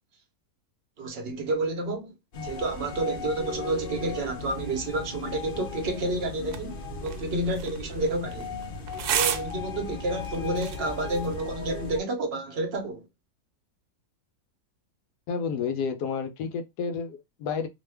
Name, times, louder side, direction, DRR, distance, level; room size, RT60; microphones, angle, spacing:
voice 1, 1.0-2.1 2.4-8.6 9.1-13.1, right 2 dB, 55° right, 0.7 m, -30 dB
sound 1, 2.3-12.0, left 4 dB, 65° left, 0.5 m, -37 dB
sound 2, 6.4-11.4, right 8 dB, 80° right, 1.1 m, -34 dB
voice 2, 15.3-17.7, left 6 dB, 85° left, 1.2 m, -31 dB
2.9 x 2.1 x 3.2 m
omnidirectional pair, 1.7 m